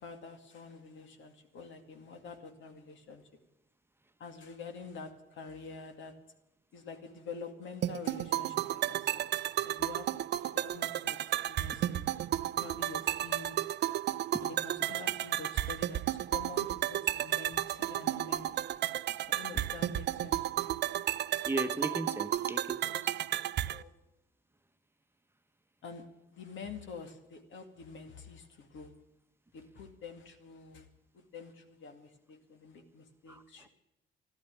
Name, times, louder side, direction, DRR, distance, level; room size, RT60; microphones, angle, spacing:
voice 1, 0.0-3.2 4.2-6.1 6.7-9.2 9.6-10.1 10.5-11.2 11.4-12.1 12.6-13.6 14.4-18.7 19.3-20.8 23.7-23.9 25.8-28.9 29.5-30.9 31.1-33.7, left 4 dB, 75° left, 6 dB, 2.2 m, -47 dB
sound 1, 7.8-23.8, right 12 dB, 60° right, 0.4 m, -33 dB
voice 2, 21.5-23.1 33.3-33.7, right 2 dB, 10° right, 8 dB, 1.0 m, -37 dB
12.5 x 12.5 x 9.1 m, 0.93 s
cardioid pair, 90°, 20 cm